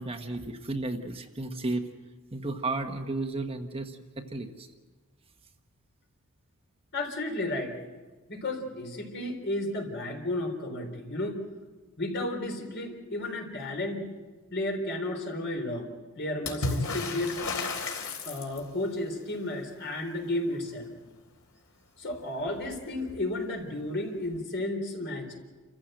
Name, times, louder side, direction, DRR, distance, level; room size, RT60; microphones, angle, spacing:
voice 1, 0.0-1.8 2.3-4.7, right 2 dB, 25° right, 5 dB, 1.3 m, -33 dB
voice 2, 6.9-7.8 8.3-11.4 12.0-14.1 14.5-15.9 16.2-17.4 18.2-20.9 22.0-25.3, left 1 dB, 55° left, 3 dB, 3.9 m, -33 dB
Water / Splash splatter, 16.4-18.8 22.1-22.2 22.5-23.3 24.3-24.4, left 3 dB, 80° left, 3.6 m, -33 dB
29.0 x 15.0 x 7.9 m, 1.3 s
head